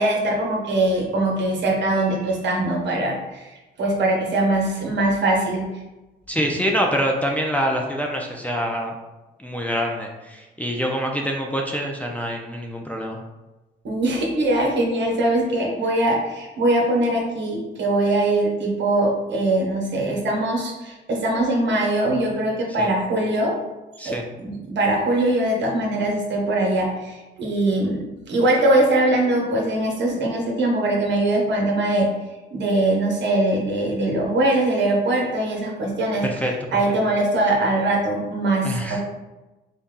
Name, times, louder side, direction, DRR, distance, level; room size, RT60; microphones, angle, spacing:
voice 1, 0.0-5.7 13.8-23.5 24.0-32.1 32.5-36.3 36.7-39.0, right 1 dB, 65° right, -1 dB, 1.1 m, -22 dB
voice 2, 6.3-9.0 9.4-13.2 22.8-22.9 24.0-24.2 36.2-36.5 38.6-39.0, equal, 5° left, -1 dB, 0.5 m, -25 dB
4.0 x 2.3 x 3.7 m, 1.1 s
cardioid pair, 90°, 20 cm